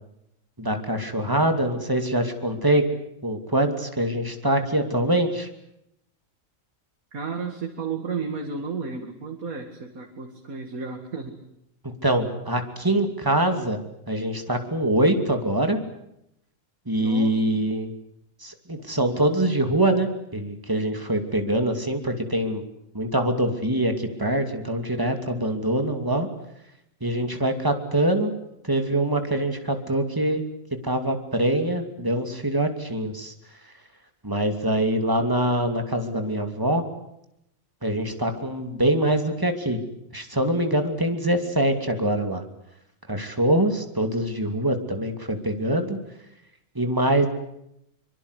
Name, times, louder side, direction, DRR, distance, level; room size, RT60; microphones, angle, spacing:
voice 1, 0.6-2.9 3.2-5.5 11.8-13.8 14.1-15.8 16.9-17.9 18.4-22.6 22.9-26.3 27.0-28.3 28.6-30.4 30.8-33.3 34.2-36.8 37.8-39.8 40.1-42.4 43.1-46.0 46.7-47.3, right 1 dB, 15° right, 6 dB, 2.7 m, -24 dB
voice 2, 7.1-11.4 17.0-17.6, right 5 dB, 85° right, 3 dB, 2.6 m, -33 dB
24.5 x 24.0 x 8.3 m, 0.80 s
omnidirectional pair, 1.4 m